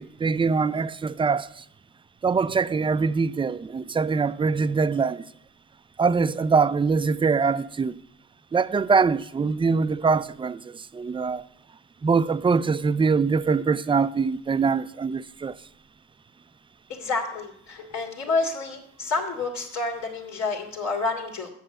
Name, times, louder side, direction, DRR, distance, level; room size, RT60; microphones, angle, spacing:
voice 1, 0.0-1.5 2.2-5.2 6.0-8.0 8.5-11.4 12.0-15.6, right 5 dB, 15° right, 0.4 m, -23 dB
voice 2, 16.9-21.5, left 3 dB, 70° left, 2.0 m, -29 dB
7.9 x 6.4 x 7.6 m
supercardioid pair, 65°, 30 cm